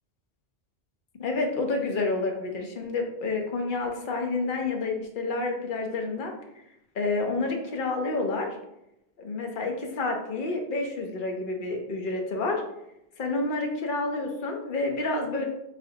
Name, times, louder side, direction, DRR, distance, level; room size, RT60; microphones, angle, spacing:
voice 1, 1.2-6.3 7.0-8.6 9.2-12.6 13.2-15.4, left 3 dB, 55° left, 3 dB, 0.8 m, -29 dB
4.1 x 4.0 x 2.7 m, 0.84 s
omnidirectional pair, 1.1 m